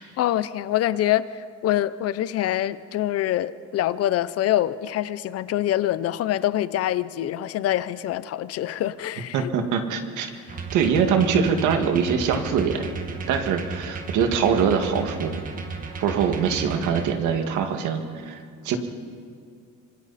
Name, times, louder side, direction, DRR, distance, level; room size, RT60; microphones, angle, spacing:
voice 1, 0.2-9.5, left 13 dB, 55° left, 16 dB, 0.6 m, -25 dB
voice 2, 9.3-10.3 10.7-12.9 13.3-15.4 16.0-18.8, right 6 dB, 85° right, 6 dB, 2.0 m, -23 dB
sound 1, 10.5-17.1, right 4 dB, 30° right, 1.6 m, -34 dB
25.5 x 25.0 x 4.2 m, 2.2 s
cardioid pair, 180°, 30 cm